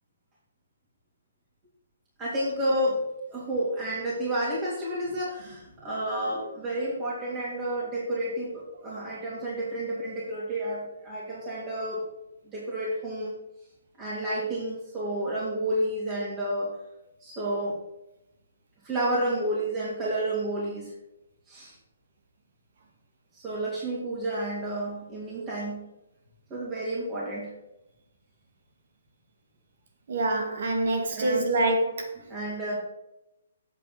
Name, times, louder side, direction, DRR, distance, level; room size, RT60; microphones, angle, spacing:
voice 1, 2.2-3.0 3.3-12.1 12.4-13.3 14.0-16.7 17.2-17.8 18.8-20.9 21.5-21.7 23.3-25.9 26.5-27.5 31.1-31.4 32.3-32.8, right 1 dB, 20° right, -7 dB, 2.9 m, -30 dB
voice 2, 30.1-32.2, right 2 dB, 60° right, 4 dB, 2.0 m, -26 dB
8.1 x 5.3 x 7.4 m, 0.90 s
hypercardioid pair, 140°, 0 cm